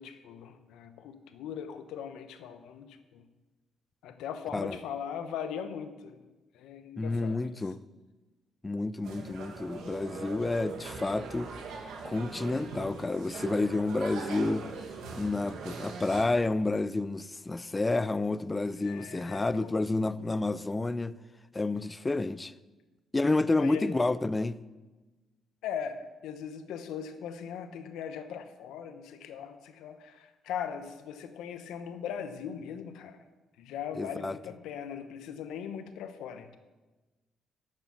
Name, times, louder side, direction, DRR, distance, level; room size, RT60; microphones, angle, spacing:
voice 1, 0.0-3.2 4.0-6.2 6.5-7.6 18.8-19.8 23.6-23.9 25.6-26.0 26.2-33.2 33.6-36.6, left 8 dB, 90° left, 1.0 m, -39 dB
voice 2, 7.0-7.8 8.6-11.5 12.0-14.7 15.1-21.1 21.5-22.5 23.1-24.6 34.0-34.4, left 2 dB, 20° left, 0.5 m, -30 dB
sound 1, 9.0-16.3, right 4 dB, 80° right, 1.7 m, -41 dB
12.0 x 6.8 x 7.1 m
cardioid pair, 90°, 0 cm